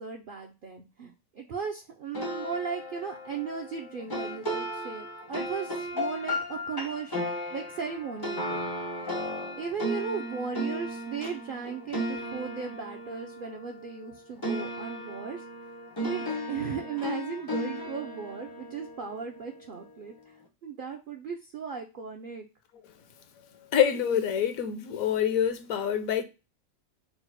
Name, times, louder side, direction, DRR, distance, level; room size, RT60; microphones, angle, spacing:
voice 1, 0.0-7.2 7.5-8.7 9.6-15.4 16.0-20.2 20.6-22.5, right 6 dB, 60° right, 0.5 m, -36 dB
sound 1, 2.1-14.1 14.4-19.6, equal, 30° left, 0.5 m, -35 dB
voice 2, 23.7-26.2, left 9 dB, 80° left, 1.1 m, -26 dB
4.0 x 2.0 x 4.4 m
omnidirectional pair, 1.4 m